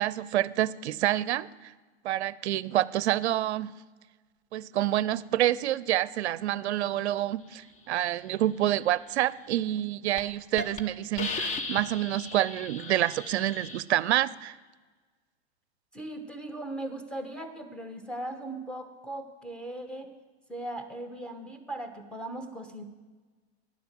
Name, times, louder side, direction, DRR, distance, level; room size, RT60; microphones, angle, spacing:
voice 1, 0.0-1.7 2.0-3.7 4.5-14.5, right 13 dB, 80° right, 19 dB, 0.5 m, -28 dB
Hiss, 9.6-9.8 10.2-10.3 10.6-10.8 11.2-13.8, left 3 dB, 20° left, 0.9 m, -36 dB
voice 2, 15.9-20.1 20.5-22.8, right 1 dB, 5° left, 5 dB, 1.1 m, -38 dB
10.5 x 6.9 x 7.5 m, 1.3 s
hypercardioid pair, 115°, 33 cm